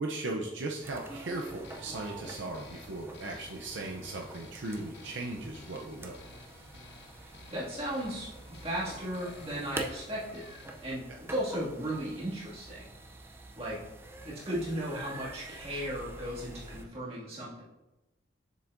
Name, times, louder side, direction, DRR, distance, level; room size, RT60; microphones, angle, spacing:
voice 1, 0.0-6.3, right 2 dB, 70° right, 0 dB, 0.6 m, -37 dB
sound 1, 0.8-16.9, right 2 dB, 10° right, 0.5 m, -46 dB
sound 2, 1.3-10.9, left 3 dB, 60° left, 0.8 m, -54 dB
voice 2, 7.2-10.4 10.8-11.0 11.3-12.9 13.6-13.8 14.2-17.6, right 1 dB, 30° right, -7 dB, 2.1 m, -36 dB
7.1 x 6.9 x 2.6 m, 1.0 s
head